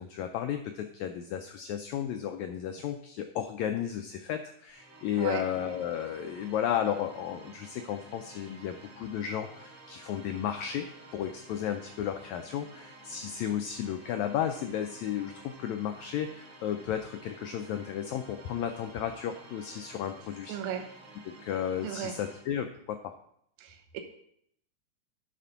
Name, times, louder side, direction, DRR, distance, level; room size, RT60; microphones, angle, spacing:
voice 1, 0.0-20.6 21.3-23.1, left 9 dB, 90° left, 7 dB, 1.6 m, -33 dB
sound 1, 4.7-22.6, right 2 dB, 45° right, 1.1 m, -52 dB
voice 2, 20.5-20.9 21.8-22.2 23.6-24.0, right 9 dB, 65° right, 4 dB, 2.1 m, -36 dB
11.0 x 4.2 x 5.6 m, 0.71 s
omnidirectional pair, 3.8 m